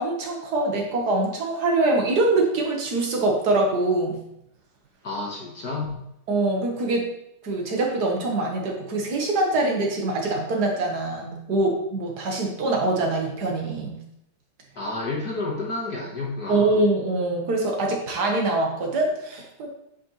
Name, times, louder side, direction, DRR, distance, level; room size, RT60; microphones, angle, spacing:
voice 1, 0.0-4.2 6.3-7.0 7.4-14.0 16.5-19.7, right 2 dB, 50° right, 0 dB, 1.3 m, -24 dB
voice 2, 5.0-6.0 14.7-16.8, left 2 dB, 45° left, -2 dB, 1.4 m, -30 dB
10.5 x 5.2 x 3.2 m, 0.77 s
omnidirectional pair, 3.3 m